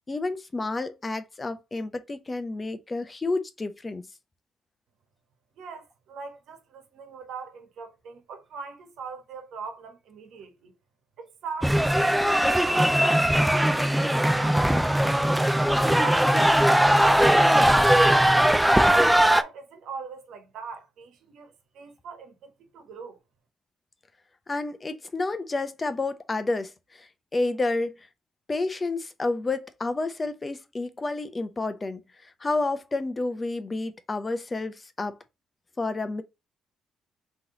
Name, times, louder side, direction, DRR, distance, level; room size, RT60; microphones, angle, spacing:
voice 1, 0.1-4.1 24.5-27.9 28.5-35.2 35.8-36.2, left 3 dB, 25° left, 0.7 m, -30 dB
voice 2, 5.6-10.7 11.2-13.9 14.2-15.2 15.8-18.2 18.9-23.2, right 5 dB, 80° right, 1.3 m, -41 dB
sound 1, 11.6-19.4, right 1 dB, 5° right, 0.4 m, -20 dB
3.8 x 3.0 x 3.7 m
cardioid pair, 90°, 0 cm